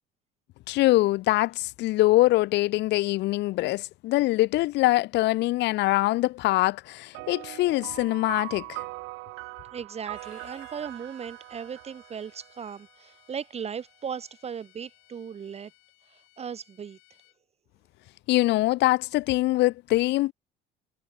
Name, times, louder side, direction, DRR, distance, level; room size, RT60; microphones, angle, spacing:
voice 1, 0.7-8.8 18.3-20.3, left 18 dB, 60° left, 0.5 m, -23 dB
sound 1, 7.1-12.9, right 25 dB, 75° right, 1.6 m, -41 dB
voice 2, 9.7-15.7 16.1-17.0, right 7 dB, 30° right, 0.7 m, -37 dB
Bowed string instrument, 10.1-17.4, left 26 dB, 80° left, 4.7 m, -60 dB
supercardioid pair, 95°, 20 cm